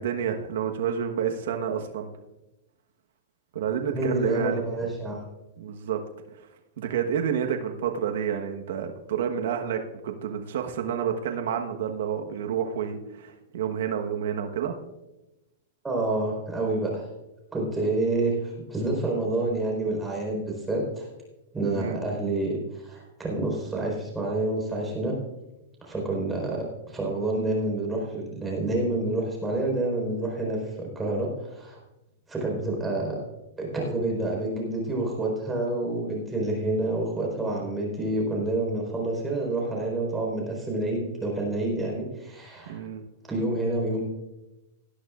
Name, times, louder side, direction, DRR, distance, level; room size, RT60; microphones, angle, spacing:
voice 1, 0.0-2.1 3.5-4.6 5.6-6.0 6.8-14.7 21.7-22.0 42.7-43.0, right 8 dB, 70° right, 4 dB, 1.2 m, -29 dB
voice 2, 3.9-5.2 15.8-17.0 17.5-21.1 21.5-25.2 25.8-31.8 32.3-33.2 33.6-42.8 43.3-44.0, right 2 dB, 10° right, -2 dB, 4.5 m, -28 dB
18.0 x 11.5 x 2.5 m, 0.99 s
hypercardioid pair, 145°, 0 cm